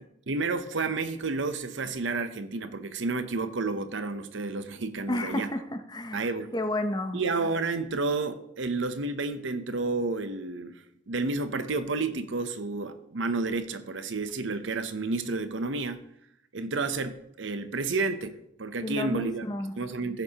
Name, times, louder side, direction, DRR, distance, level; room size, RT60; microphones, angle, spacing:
voice 1, 0.3-5.5 6.1-6.5 7.1-16.0 16.5-19.5 19.8-20.2, right 3 dB, 65° right, 0.7 m, -31 dB
voice 2, 5.1-6.2 6.5-7.2 18.8-19.7, left 1 dB, 20° left, 0.6 m, -31 dB
16.0 x 6.9 x 2.9 m
head